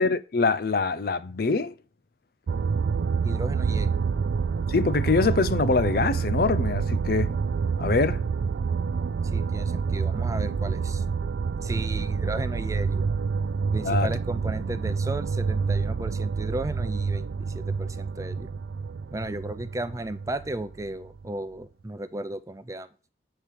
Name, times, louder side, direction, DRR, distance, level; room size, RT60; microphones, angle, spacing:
voice 1, 0.0-1.7 4.7-7.3 7.8-8.2 13.8-14.1, left 4 dB, 55° left, 0.5 m, -24 dB
sound 1, 2.5-21.2, right 5 dB, 80° right, 0.4 m, -27 dB
voice 2, 3.2-4.0 9.2-11.0 11.6-13.1 13.7-18.5 19.1-22.9, right 1 dB, 20° right, 0.6 m, -35 dB
8.6 x 4.7 x 7.4 m
head